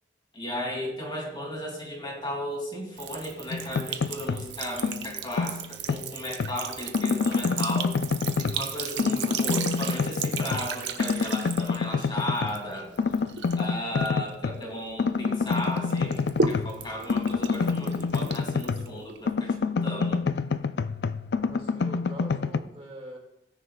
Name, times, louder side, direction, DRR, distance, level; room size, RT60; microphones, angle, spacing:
voice 1, 0.3-7.9 8.4-12.9 13.6-20.3, equal, 25° left, -1 dB, 2.6 m, -35 dB
Sink (filling or washing) / Trickle dribble, 3.0-15.1 15.5-19.3, right 6 dB, 75° right, 1.0 m, -36 dB
sound 1, 3.5-4.5 4.8-6.6 6.9-8.7 9.0-10.7 11.0-12.6 13.0-14.6 15.0-19.0 19.3-22.6, left 5 dB, 65° left, 0.4 m, -27 dB
voice 2, 21.3-23.2, right 1 dB, 30° right, 0 dB, 2.1 m, -43 dB
17.5 x 9.9 x 2.3 m, 0.84 s
head